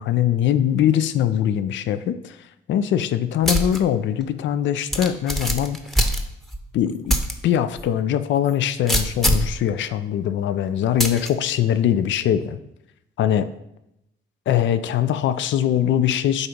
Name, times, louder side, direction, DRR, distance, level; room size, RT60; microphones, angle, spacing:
voice 1, 0.0-2.4 2.7-6.1 6.7-7.2 7.4-12.6 13.2-13.5 14.5-16.5, left 10 dB, 70° left, 12 dB, 0.5 m, -22 dB
sound 1, 3.4-3.8 4.2-4.3 4.9-6.6 7.1-7.3 7.8-7.9 8.9-9.6 11.0-11.3, equal, ahead, 0.8 m, -22 dB
8.1 x 3.0 x 5.1 m, 0.84 s
cardioid pair, 90°, 20 cm